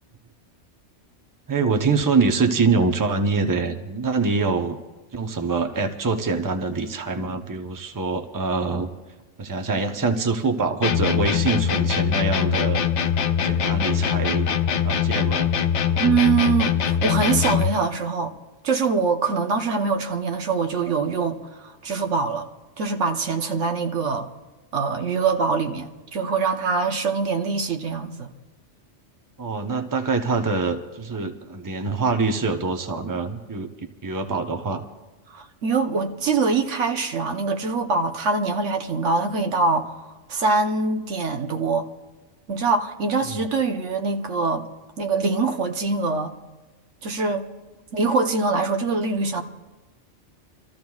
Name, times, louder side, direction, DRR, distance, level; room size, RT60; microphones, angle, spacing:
voice 1, 1.5-4.8 5.1-8.9 9.4-12.8 13.4-14.5 14.8-15.5 29.4-34.8 43.2-43.4, right 4 dB, 20° right, 0.7 m, -24 dB
sound 1, 10.8-17.8, left 8 dB, 75° left, 1.0 m, -22 dB
voice 2, 16.0-18.3 18.6-22.5 22.8-24.3 24.7-28.3 35.3-39.9 40.3-41.9 42.5-44.7 45.0-46.3 47.0-47.5 47.9-49.4, right 4 dB, 85° right, 1.3 m, -23 dB
28.0 x 14.0 x 2.4 m
omnidirectional pair, 1.2 m